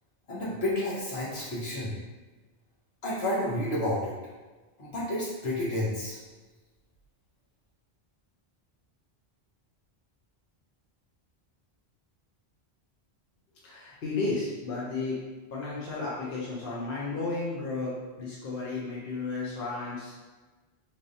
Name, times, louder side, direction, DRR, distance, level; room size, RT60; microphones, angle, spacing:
voice 1, 0.3-1.9 3.0-4.1 4.8-6.2, left 1 dB, 80° left, -8 dB, 1.5 m, -30 dB
voice 2, 13.6-15.2 15.5-20.2, left 3 dB, 60° left, -6 dB, 0.9 m, -33 dB
4.1 x 3.2 x 2.7 m, 1.3 s
omnidirectional pair, 1.1 m